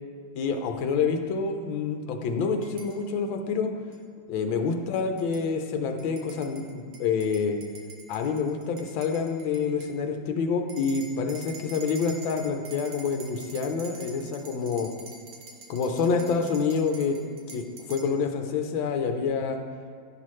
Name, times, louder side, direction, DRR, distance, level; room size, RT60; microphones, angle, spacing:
voice 1, 0.3-3.7 4.3-7.6 8.1-14.9 15.7-17.2 17.5-19.6, left 5 dB, 80° left, 5 dB, 1.4 m, -27 dB
sound 1, 2.6-3.0 3.9-4.0 5.0-5.4 6.0-10.0 10.7-18.1, right 3 dB, 75° right, 1.7 m, -46 dB
10.5 x 5.8 x 3.1 m, 2.2 s
omnidirectional pair, 2.1 m